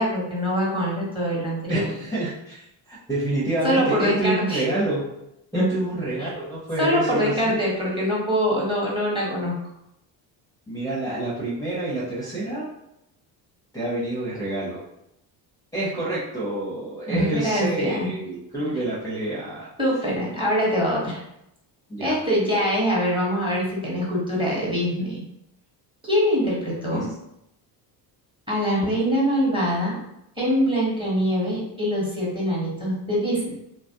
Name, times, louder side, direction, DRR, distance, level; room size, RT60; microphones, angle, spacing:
voice 1, 0.0-1.9 3.6-4.6 5.5-5.7 6.2-6.3 6.8-9.5 17.1-18.1 19.8-21.2 22.0-25.2 26.0-27.1 28.5-30.0 30.4-33.5, equal, 10° right, -5 dB, 1.2 m, -23 dB
voice 2, 1.7-2.6 2.9-5.1 5.5-7.6 10.7-12.6 13.7-14.8 15.7-19.7 21.9-22.2 26.9-27.0, right 2 dB, 5° left, -8 dB, 0.9 m, -28 dB
2.9 x 2.4 x 2.8 m, 0.82 s
cardioid pair, 100°, 45 cm